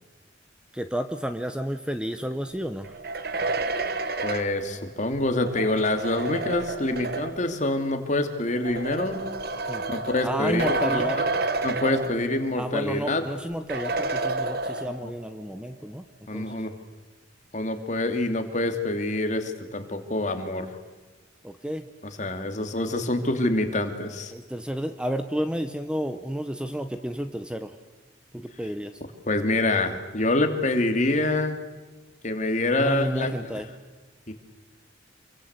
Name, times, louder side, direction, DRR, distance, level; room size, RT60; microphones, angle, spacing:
voice 1, 0.7-2.9 9.7-9.8 10.2-11.2 12.6-16.1 16.3-16.6 21.4-21.9 24.3-27.7 28.3-28.9 32.7-33.7, equal, 5° right, 9 dB, 0.9 m, -31 dB
sound 1, 2.8-7.5 8.5-12.6 13.0-13.1 13.7-15.2, right 3 dB, 55° right, 1.5 m, -30 dB
voice 2, 4.2-9.3 9.9-11.0 11.6-13.2 15.0-15.1 16.3-16.7 17.5-20.7 22.0-24.3 29.3-31.6 32.2-33.3 34.3-34.4, left 2 dB, 40° left, 6 dB, 2.6 m, -26 dB
27.5 x 23.5 x 8.2 m, 1.2 s
head